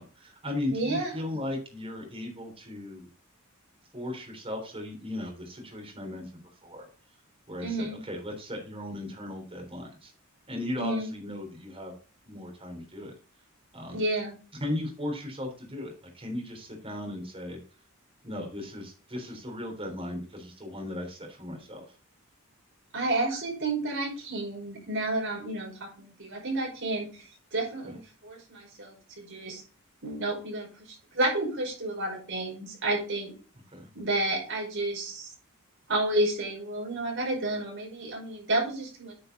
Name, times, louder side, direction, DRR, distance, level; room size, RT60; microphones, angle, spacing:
voice 1, 0.0-3.1 3.9-6.9 7.5-10.1 10.5-11.9 12.3-13.1 13.7-14.0 14.6-17.6 18.2-21.8 27.8-28.0 33.7-33.9, left 1 dB, 25° right, 1 dB, 3.6 m, -37 dB
voice 2, 0.7-1.1 7.6-8.0 10.8-11.1 13.9-14.4 22.9-27.2 27.5-29.6 30.0-33.3 33.9-35.3 35.9-39.1, right 2 dB, 60° right, -1 dB, 5.1 m, -31 dB
9.6 x 5.5 x 4.0 m, 0.37 s
head